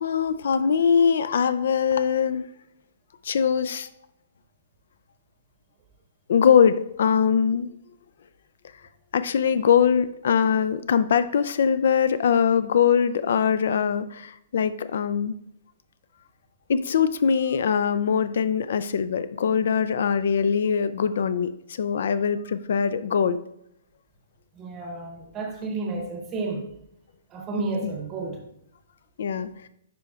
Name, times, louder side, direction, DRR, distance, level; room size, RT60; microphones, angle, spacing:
voice 1, 0.0-2.4 3.2-3.9 6.3-7.7 9.1-15.3 16.7-23.4 27.8-27.9 29.2-29.5, left 7 dB, 65° left, 0.3 m, -22 dB
voice 2, 24.5-26.7 27.3-28.4, right 3 dB, 20° right, 0.8 m, -31 dB
10.0 x 4.4 x 2.3 m
hypercardioid pair, 170°, 0 cm